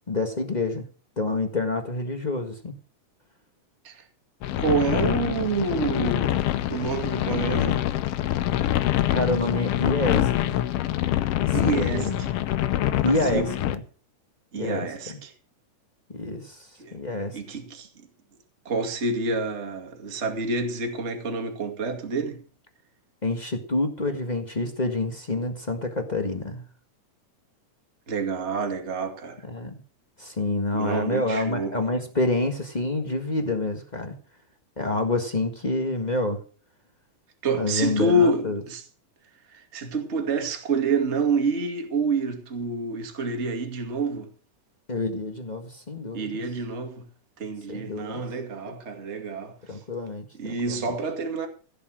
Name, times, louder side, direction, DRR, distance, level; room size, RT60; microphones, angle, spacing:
voice 1, 0.1-0.9 1.2-2.7 9.1-10.6 11.4-12.3 13.0-13.8 14.5-15.2 16.1-17.4 23.2-26.6 29.5-29.8 30.2-34.1 34.8-36.4 37.6-38.6 44.9-46.4 47.7-48.2 49.7-50.8, left 2 dB, 40° left, 0.6 m, -28 dB
sound 1, 4.4-13.7, left 13 dB, 80° left, 1.3 m, -25 dB
voice 2, 4.6-6.4 6.7-7.9 11.5-12.3 13.0-13.6 14.5-15.3 16.8-17.0 17.3-18.1 18.6-22.4 28.1-29.4 30.7-31.8 37.4-38.8 39.5-44.3 46.1-47.1 47.4-49.8 50.3-51.5, right 3 dB, 25° right, 2.1 m, -28 dB
15.5 x 8.8 x 6.3 m
omnidirectional pair, 3.6 m